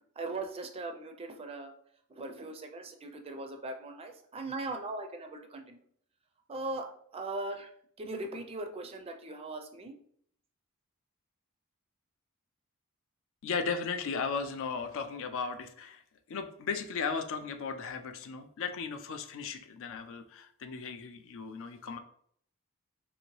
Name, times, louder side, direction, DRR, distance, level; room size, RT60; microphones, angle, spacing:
voice 1, 0.2-1.7 2.1-5.8 6.5-6.9 7.1-7.7 8.0-9.9, right 2 dB, 25° right, 5 dB, 0.4 m, -39 dB
voice 2, 13.4-16.0 16.3-22.0, left 5 dB, 65° left, 8 dB, 0.4 m, -36 dB
3.0 x 2.8 x 3.0 m, 0.63 s
head